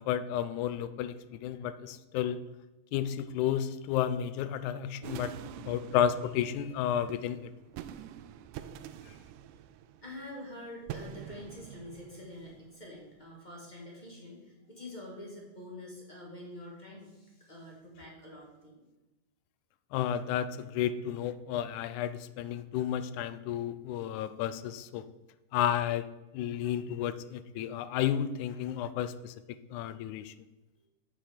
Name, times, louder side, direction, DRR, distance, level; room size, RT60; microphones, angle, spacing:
voice 1, 0.0-2.4 2.9-5.3 5.7-7.5 19.9-25.1 25.5-26.1 26.3-29.4 29.7-30.3, left 10 dB, 80° left, 13 dB, 2.0 m, -32 dB
sound 1, 5.0-13.3, right 10 dB, 85° right, 2.0 m, -46 dB
voice 2, 10.0-18.8 30.8-30.9, left 1 dB, 20° left, -2 dB, 1.4 m, -46 dB
7.6 x 7.1 x 5.0 m, 1.0 s
omnidirectional pair, 3.5 m